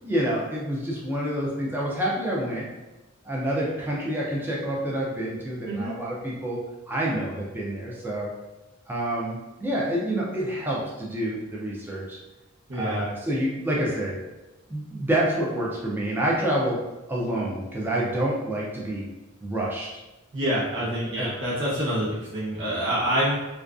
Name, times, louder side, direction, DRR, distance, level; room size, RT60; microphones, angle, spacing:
voice 1, 0.0-2.7 3.2-6.6 6.9-8.3 8.9-12.2 12.7-14.2 14.7-16.8 17.1-19.1 19.4-19.9 21.2-21.3, right 1 dB, 10° right, -4 dB, 0.3 m, -28 dB
voice 2, 5.7-6.0 12.7-13.0 20.3-23.3, equal, 60° right, -8 dB, 0.7 m, -26 dB
2.4 x 2.2 x 2.3 m, 1.1 s
head